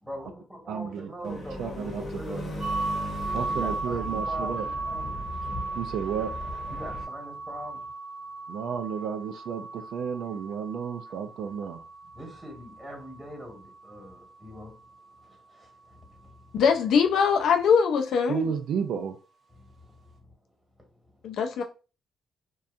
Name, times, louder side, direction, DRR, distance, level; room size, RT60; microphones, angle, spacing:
voice 1, 0.0-2.8 3.5-5.1 6.7-7.8 12.1-14.8 15.6-15.7 19.6-19.7, equal, 5° right, 1.2 m, -42 dB
voice 2, 0.7-2.5 3.3-4.7 5.7-6.3 8.5-11.8 18.3-19.1, right 7 dB, 75° right, 0.4 m, -32 dB
sound 1, 1.2-7.0, left 1 dB, 45° left, 0.8 m, -38 dB
sound 2, 2.6-14.3, right 3 dB, 40° right, 0.7 m, -36 dB
voice 3, 16.5-18.5 21.2-21.6, left 6 dB, 75° left, 0.4 m, -22 dB
2.7 x 2.3 x 2.4 m
cardioid pair, 90°, 0 cm